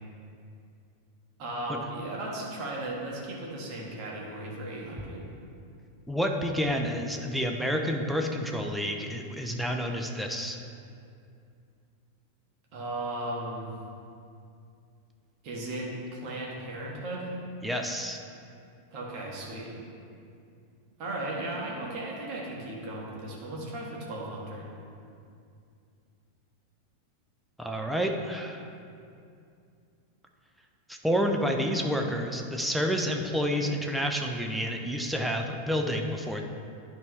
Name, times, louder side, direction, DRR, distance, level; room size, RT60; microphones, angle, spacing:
voice 1, 1.4-5.3 12.7-13.7 15.4-17.3 18.9-19.8 21.0-24.7, right 1 dB, 40° right, -3 dB, 1.7 m, -36 dB
voice 2, 6.1-10.6 17.6-18.2 27.6-28.7 30.9-36.4, equal, ahead, 2 dB, 0.6 m, -29 dB
10.5 x 4.6 x 3.3 m, 2.5 s
figure-of-eight pair, 90°, 0 cm